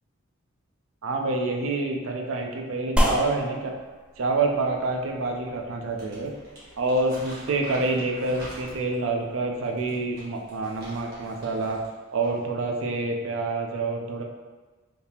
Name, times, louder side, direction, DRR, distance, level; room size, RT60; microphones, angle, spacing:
voice 1, 1.0-3.7 4.2-6.3 6.8-11.8 12.1-14.2, right 3 dB, 75° right, 2 dB, 0.5 m, -27 dB
sound 1, 3.0-11.7, equal, 5° right, 0.3 m, -33 dB
Crumpling crinkling, 5.8-9.0 9.6-11.9 12.2-12.4, right 1 dB, 55° right, 1.3 m, -45 dB
3.5 x 2.8 x 2.8 m, 1.2 s
head